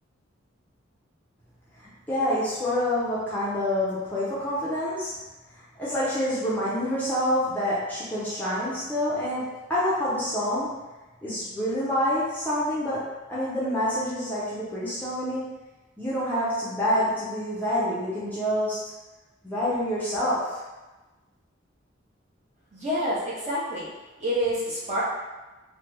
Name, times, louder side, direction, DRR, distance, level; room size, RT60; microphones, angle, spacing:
voice 1, 1.8-5.2 5.5-10.8 11.2-15.5 16.0-18.8 19.4-20.6, equal, 10° left, -10 dB, 0.6 m, -27 dB
voice 2, 22.7-23.9 24.2-25.0, equal, 35° right, -9 dB, 1.0 m, -27 dB
3.3 x 2.2 x 2.9 m, 1.1 s
head